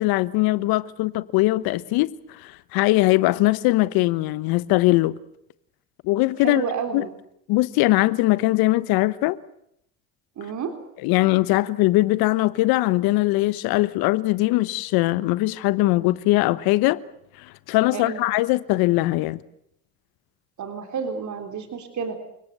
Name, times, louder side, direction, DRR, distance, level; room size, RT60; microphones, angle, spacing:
voice 1, 0.0-5.2 6.0-6.6 6.9-7.1 7.5-9.4 11.0-17.0 17.7-19.4, left 19 dB, 75° left, 1.1 m, -21 dB
voice 2, 6.4-7.1 10.4-10.7 17.9-18.2 20.6-22.2, right 6 dB, 50° right, 3.6 m, -30 dB
30.0 x 18.0 x 8.0 m
supercardioid pair, 80°, 37 cm